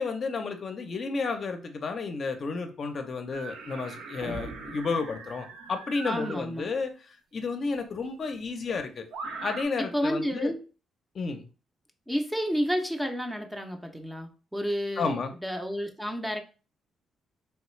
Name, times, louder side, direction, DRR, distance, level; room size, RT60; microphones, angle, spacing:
voice 1, 0.0-9.1 9.4-10.5 11.1-11.5 15.0-15.3, left 4 dB, 50° left, 5 dB, 0.6 m, -32 dB
sound 1, 3.3-6.4 7.8-7.9 9.1-9.6, right 4 dB, 80° right, 0.4 m, -41 dB
sound 2, 4.2-5.8, right 2 dB, 65° right, 0.8 m, -42 dB
voice 2, 6.0-6.7 9.8-10.6 12.1-15.1 15.4-16.4, equal, 5° right, 4 dB, 0.5 m, -30 dB
3.3 x 2.4 x 3.1 m, 0.35 s
cardioid pair, 90°, 0 cm